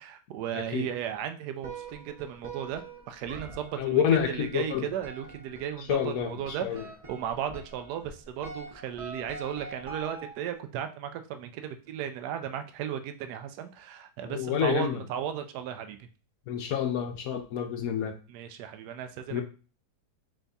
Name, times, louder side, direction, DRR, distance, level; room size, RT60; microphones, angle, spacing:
voice 1, 0.0-16.1 18.3-19.4, right 9 dB, 75° right, 8 dB, 1.1 m, -35 dB
sound 1, 1.6-10.6, right 3 dB, 30° right, 0.6 m, -45 dB
voice 2, 3.8-4.8 5.9-6.8 14.2-15.0 16.5-18.1 19.3-19.4, left 9 dB, 70° left, 5 dB, 0.9 m, -28 dB
3.5 x 3.4 x 4.0 m, 0.37 s
omnidirectional pair, 1.8 m